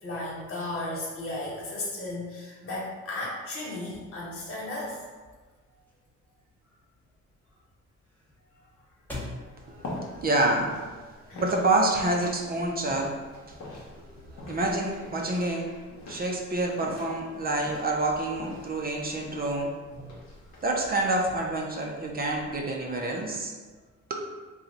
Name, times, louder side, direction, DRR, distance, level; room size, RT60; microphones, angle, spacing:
voice 1, 0.0-5.0 9.4-9.5 11.2-11.5, left 2 dB, 45° left, -6 dB, 1.2 m, -35 dB
sound 1, 4.0-11.1, left 2 dB, 5° left, 0.9 m, -47 dB
sound 2, 9.4-23.5, left 2 dB, 65° left, 1.0 m, -44 dB
voice 2, 9.7-10.7 11.4-13.4 14.5-15.7 16.1-19.7 20.6-23.5, right 2 dB, 30° right, 0 dB, 0.6 m, -27 dB
2.9 x 2.3 x 3.8 m, 1.4 s
cardioid pair, 90°, 30 cm